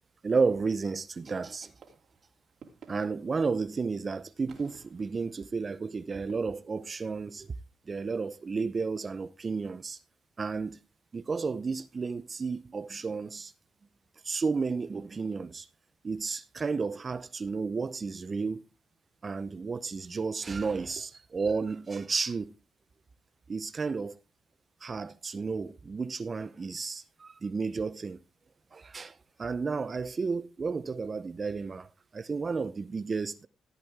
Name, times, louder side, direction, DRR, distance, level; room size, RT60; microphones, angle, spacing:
voice 1, 0.2-1.7 2.9-7.5 7.9-10.0 10.4-10.8 11.1-13.5 14.2-15.7 16.0-18.6 19.2-22.5 23.5-24.2 24.8-28.2 28.7-33.5, right 4 dB, 35° right, 0.7 m, -32 dB
sound 1, 1.1-1.6 1.8-4.0 4.5-6.3, right 6 dB, 60° right, 2.9 m, -55 dB
15.0 x 8.4 x 3.5 m
cardioid pair, 90°, 0 cm